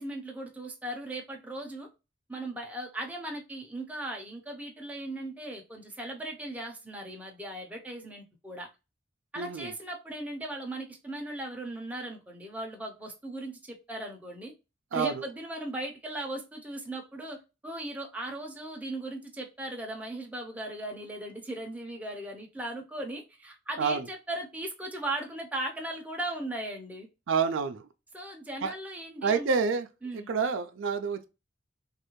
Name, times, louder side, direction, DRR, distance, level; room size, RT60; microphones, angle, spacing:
voice 1, 0.0-1.9 2.3-8.7 9.3-14.5 14.9-17.4 17.6-27.1 28.1-29.5 30.0-30.3, right 1 dB, 10° right, 0.6 m, -38 dB
voice 2, 9.4-9.7 14.9-15.2 23.8-24.1 27.3-27.9 28.6-28.7 29.2-29.9 30.1-31.3, right 5 dB, 85° right, 0.4 m, -28 dB
3.2 x 2.4 x 3.0 m
head